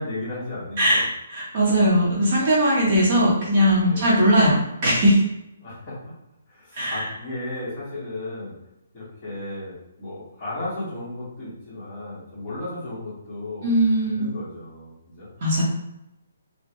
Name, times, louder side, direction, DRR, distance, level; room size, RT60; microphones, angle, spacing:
voice 1, 0.0-1.0 3.8-4.0 5.6-6.1 6.5-8.5 8.9-13.7 14.1-15.3, left 2 dB, 20° left, -10 dB, 1.4 m, -34 dB
voice 2, 0.8-4.6 4.8-5.2 6.7-7.0 13.6-14.3 15.4-15.6, equal, 35° right, -6 dB, 1.0 m, -19 dB
3.6 x 2.2 x 3.0 m, 0.86 s
hypercardioid pair, 170°, 0 cm